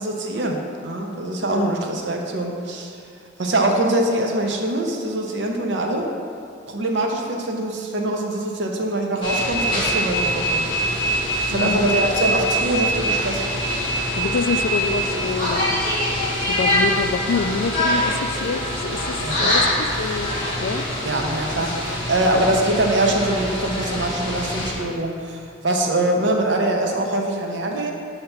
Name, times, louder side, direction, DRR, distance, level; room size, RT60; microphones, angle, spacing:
voice 1, 0.0-3.0 3.4-6.1 6.7-10.7 11.5-13.4 19.2-19.5 21.0-27.9, right 1 dB, 60° right, 1 dB, 0.7 m, -23 dB
sound 1, 9.2-24.7, equal, 25° left, 1.3 m, -24 dB
voice 2, 11.5-11.9 14.2-15.8 16.5-20.3 20.6-20.9 22.3-22.5 26.0-26.1, left 5 dB, 70° left, 9 dB, 0.3 m, -26 dB
6.6 x 2.9 x 5.7 m, 2.4 s
head